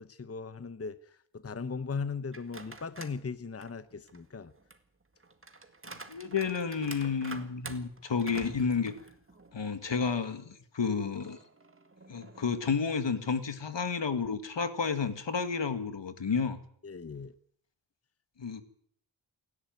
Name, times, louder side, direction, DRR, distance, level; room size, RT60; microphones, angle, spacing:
voice 1, 0.0-4.5 16.8-17.3, left 5 dB, 30° left, 13 dB, 0.9 m, -38 dB
sound 1, 2.3-3.2 3.6-9.7 10.1-10.2 11.2-12.6, right 3 dB, 30° right, 1.9 m, -48 dB
voice 2, 6.1-8.9 9.5-11.4 12.1-16.6 18.4-18.6, left 5 dB, 75° left, 10 dB, 2.1 m, -31 dB
28.0 x 11.0 x 9.3 m, 0.64 s
wide cardioid pair, 105°, 45 cm